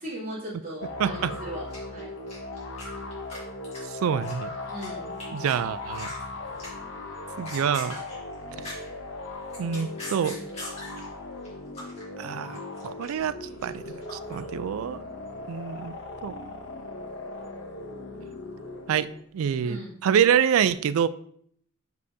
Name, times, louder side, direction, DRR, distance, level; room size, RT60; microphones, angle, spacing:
voice 1, 0.0-2.1 4.7-5.1 19.6-19.9, equal, 40° right, 2.5 m, -38 dB
sound 1, 0.8-19.2, left 2 dB, 60° left, 0.7 m, -38 dB
voice 2, 1.0-1.3 3.9-4.5 5.3-6.1 7.4-8.0 9.6-10.4 12.2-13.8 14.1-15.0 15.5-16.0 16.2-16.3 18.9-21.1, right 8 dB, 80° right, 0.3 m, -26 dB
sound 2, 1.7-2.9 3.1-4.9 5.2-5.5 5.8-6.2 6.6-6.9 7.3-9.0 9.4-11.1 11.4-12.0 12.3-14.4, left 2 dB, 30° left, 2.1 m, -41 dB
6.4 x 5.4 x 2.7 m
head